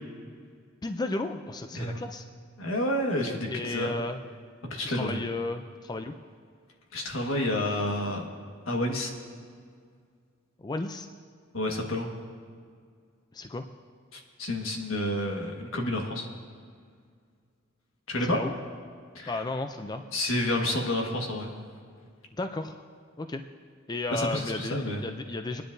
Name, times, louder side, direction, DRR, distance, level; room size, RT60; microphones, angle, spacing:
voice 1, 0.8-2.2 3.2-4.2 4.8-6.1 10.6-11.1 13.3-13.6 18.1-18.5 19.3-20.0 22.3-22.8 23.2-23.4 23.9-25.6, left 2 dB, 20° left, 7 dB, 0.3 m, -33 dB
voice 2, 2.6-3.9 4.7-5.2 6.9-8.2 8.7-9.1 11.5-12.1 14.1-16.3 18.1-18.4 19.1-19.4 20.1-21.5 24.1-25.0, left 1 dB, 75° left, 1 dB, 1.5 m, -29 dB
25.5 x 10.0 x 2.6 m, 2.1 s
head